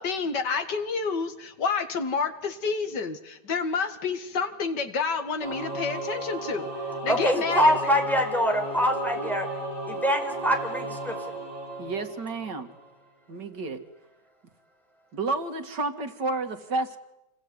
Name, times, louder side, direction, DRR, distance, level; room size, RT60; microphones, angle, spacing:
voice 1, 0.0-6.7 7.0-7.8 9.2-9.3, left 5 dB, 85° left, 8 dB, 2.6 m, -29 dB
Singing / Musical instrument, 5.4-12.9, right 2 dB, 40° left, 7.8 m, -34 dB
voice 2, 7.1-9.5 9.9-11.4, equal, ahead, 4 dB, 4.9 m, -24 dB
voice 3, 11.8-12.7 13.3-13.8 15.1-17.0, right 3 dB, 85° right, 7 dB, 2.7 m, -30 dB
28.5 x 21.0 x 9.8 m, 0.91 s
omnidirectional pair, 1.8 m